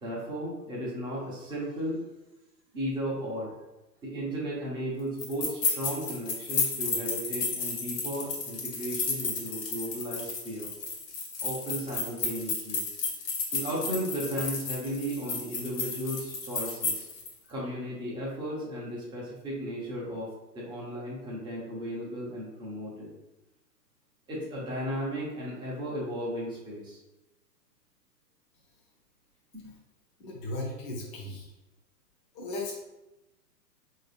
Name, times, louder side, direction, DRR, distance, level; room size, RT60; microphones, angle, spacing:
voice 1, 0.0-2.0 2.7-3.5 4.0-10.7 11.4-12.8 13.5-17.0 17.5-20.3 20.5-23.1 24.3-27.0, equal, 10° right, -6 dB, 0.8 m, -35 dB
sound 1, 5.2-17.3, left 4 dB, 65° left, 1.2 m, -33 dB
voice 2, 30.2-31.5 32.3-32.7, left 2 dB, 25° left, -3 dB, 0.8 m, -36 dB
3.7 x 2.8 x 3.4 m, 0.99 s
hypercardioid pair, 135°, 50 cm